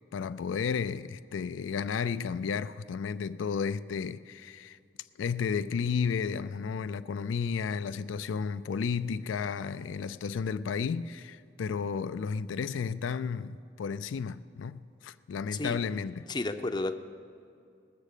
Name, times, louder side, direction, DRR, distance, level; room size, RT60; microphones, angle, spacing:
voice 1, 0.1-4.8 5.2-16.3, left 6 dB, 90° left, 0.4 m, -33 dB
voice 2, 16.3-17.0, left 2 dB, 25° left, 0.5 m, -32 dB
19.5 x 7.3 x 6.6 m
head